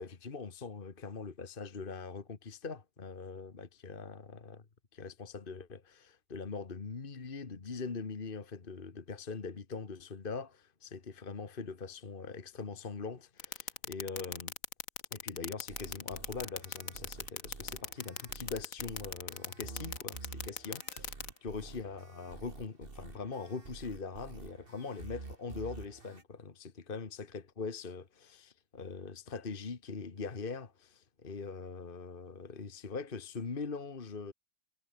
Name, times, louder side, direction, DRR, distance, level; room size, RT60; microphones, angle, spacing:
voice 1, 0.0-4.7 4.9-14.5 15.1-21.1 21.4-34.3, left 4 dB, 40° left, 1.7 m, -42 dB
sound 1, 13.4-21.3, left 6 dB, 80° left, 2.2 m, -37 dB
sound 2, 15.7-26.2, right 3 dB, 40° right, 2.7 m, -49 dB
omnidirectional pair, 1.4 m